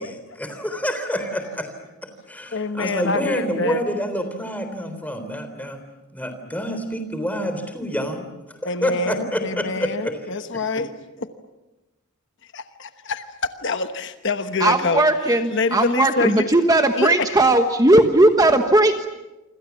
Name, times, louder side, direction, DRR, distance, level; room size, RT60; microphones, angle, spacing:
voice 1, 0.0-1.7 2.0-5.8 6.1-10.2 10.5-10.8, equal, 5° left, 7 dB, 3.6 m, -28 dB
voice 2, 2.5-3.8 8.6-10.9 11.2-11.3 12.5-16.5 16.9-17.4, left 3 dB, 55° left, 9 dB, 1.1 m, -26 dB
voice 3, 14.6-19.1, right 2 dB, 15° right, 6 dB, 1.2 m, -17 dB
28.0 x 25.5 x 7.2 m, 1.0 s
head